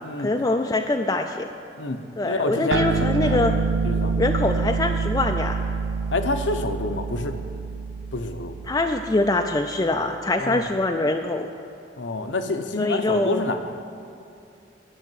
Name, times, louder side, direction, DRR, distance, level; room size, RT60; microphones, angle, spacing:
voice 1, 0.2-1.5 2.2-3.5 4.2-5.6 8.7-11.5 12.8-13.4, left 2 dB, 20° left, 3 dB, 0.4 m, -23 dB
voice 2, 2.2-2.8 3.2-3.4 3.8-4.1 6.1-7.3 8.1-8.6 10.4-10.6 12.0-13.6, left 2 dB, 75° left, 7 dB, 0.8 m, -27 dB
sound 1, 2.7-9.5, right 5 dB, 80° right, 0.3 m, -27 dB
11.0 x 6.4 x 9.1 m, 2.7 s
head